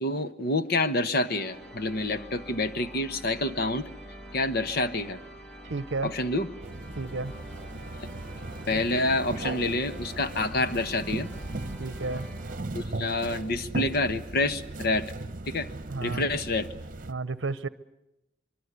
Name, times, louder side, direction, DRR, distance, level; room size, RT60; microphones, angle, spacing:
voice 1, 0.0-3.9 4.3-5.2 6.0-6.5 8.1-8.2 8.7-11.3 12.7-15.1 15.5-15.7 16.0-16.7, left 2 dB, 55° left, 11 dB, 1.2 m, -28 dB
sound 1, 1.2-13.1, equal, 5° left, 1.6 m, -45 dB
voice 2, 5.7-6.1 7.0-7.3 11.8-12.3 15.9-16.3 17.1-17.7, right 3 dB, 65° right, 16 dB, 0.8 m, -32 dB
sound 2, 6.6-17.1, right 2 dB, 45° right, 1.1 m, -37 dB
24.5 x 24.0 x 8.3 m, 0.90 s
head